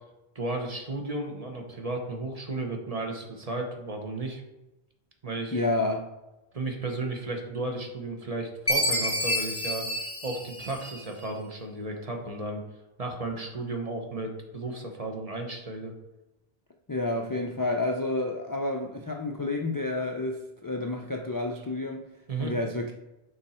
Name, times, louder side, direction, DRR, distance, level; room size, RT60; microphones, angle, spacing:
voice 1, 0.3-4.4 5.2-5.6 6.5-9.9 10.2-12.6 13.0-15.9 22.3-22.5, right 2 dB, 35° right, 2 dB, 1.1 m, -34 dB
voice 2, 5.5-6.0 16.9-22.1 22.4-22.9, left 2 dB, 30° left, 2 dB, 0.4 m, -29 dB
Chime, 8.7-11.2, left 1 dB, 15° left, 0.9 m, -29 dB
6.8 x 4.4 x 4.3 m, 0.99 s
omnidirectional pair, 1.1 m